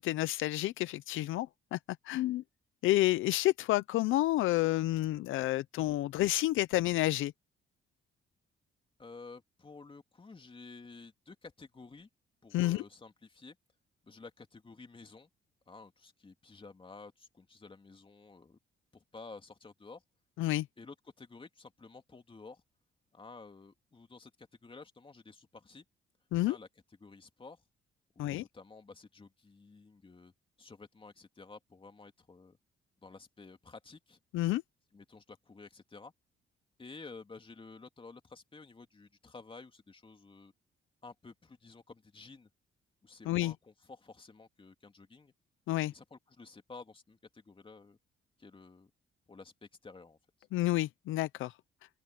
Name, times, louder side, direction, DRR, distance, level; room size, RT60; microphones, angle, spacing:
voice 1, 0.0-1.8 2.0-2.4 2.8-7.3 12.5-12.8 20.4-20.7 26.3-26.6 28.2-28.4 34.3-34.6 43.3-43.5 45.7-45.9 50.5-51.5, left 16 dB, 85° left, 0.6 m, -29 dB
voice 2, 9.0-12.1 12.4-13.6 14.0-15.3 15.7-18.6 18.9-20.0 20.8-22.6 23.1-25.8 26.5-26.7 27.0-27.6 28.1-32.6 33.0-34.2 34.9-36.1 36.8-40.5 41.0-42.5 43.0-45.3 45.9-48.0 48.4-48.9 49.3-50.2, left 4 dB, 25° left, 2.9 m, -52 dB
open air
cardioid pair, 90°, 20 cm